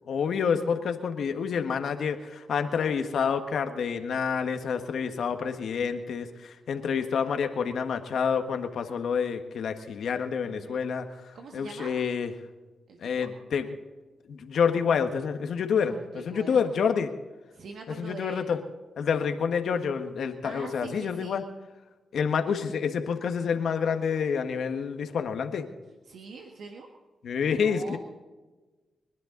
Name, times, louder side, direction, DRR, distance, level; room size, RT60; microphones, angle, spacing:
voice 1, 0.1-11.0 11.5-12.3 13.0-13.8 14.3-17.1 17.9-18.6 19.0-21.4 22.1-25.7 27.2-28.0, left 6 dB, 75° left, 7 dB, 1.5 m, -28 dB
voice 2, 10.4-10.8 11.3-11.9 12.9-13.3 15.8-16.6 17.5-18.5 20.4-21.4 26.0-26.9 27.6-28.0, right 4 dB, 75° right, 2 dB, 1.7 m, -43 dB
30.0 x 11.5 x 4.0 m, 1.2 s
cardioid pair, 60°, 0 cm